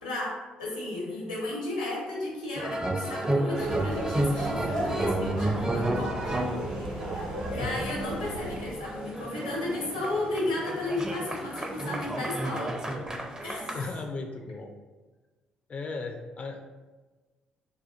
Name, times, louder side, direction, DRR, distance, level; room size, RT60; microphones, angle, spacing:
voice 1, 0.0-6.2 6.7-7.1 7.5-12.7 13.4-13.8, left 2 dB, 90° left, -4 dB, 0.8 m, -34 dB
sound 1, 2.6-13.9, right 1 dB, 20° right, 0.5 m, -32 dB
sound 2, 3.5-8.6, right 1 dB, 80° right, 0.8 m, -35 dB
sound 3, 6.3-12.1, equal, 55° right, 1.4 m, -53 dB
voice 2, 13.7-14.7 15.7-16.6, left 3 dB, 35° left, 4 dB, 0.4 m, -36 dB
4.2 x 2.2 x 2.4 m, 1.3 s
figure-of-eight pair, 45°, 4 cm